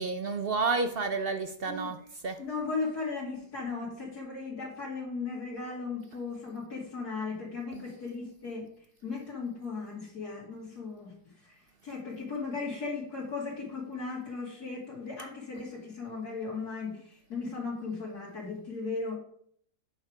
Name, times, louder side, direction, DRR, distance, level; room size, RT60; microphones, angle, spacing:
voice 1, 0.0-2.0 2.2-2.4, right 4 dB, 60° right, 8 dB, 0.6 m, -30 dB
voice 2, 1.6-2.1 2.4-8.7 9.0-19.2, left 4 dB, 75° left, -4 dB, 2.6 m, -37 dB
8.6 x 6.6 x 4.9 m, 0.64 s
omnidirectional pair, 1.7 m